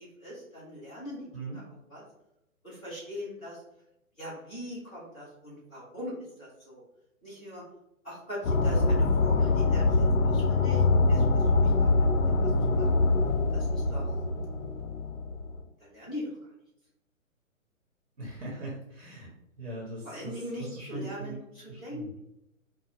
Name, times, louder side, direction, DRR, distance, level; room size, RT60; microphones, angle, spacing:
voice 1, 0.0-1.6 1.9-2.0 2.6-3.6 4.2-6.8 7.2-7.6 8.0-12.1 12.4-13.0 13.5-14.1 15.8-16.3 18.5-18.7 20.0-22.2, equal, 5° left, -12 dB, 0.4 m, -41 dB
sound 1, 8.4-15.6, left 3 dB, 65° left, 0.6 m, -24 dB
voice 2, 18.2-19.3 19.6-21.4 21.7-22.1, right 2 dB, 40° right, -4 dB, 1.2 m, -40 dB
4.7 x 2.3 x 3.4 m, 0.84 s
figure-of-eight pair, 130°, 42 cm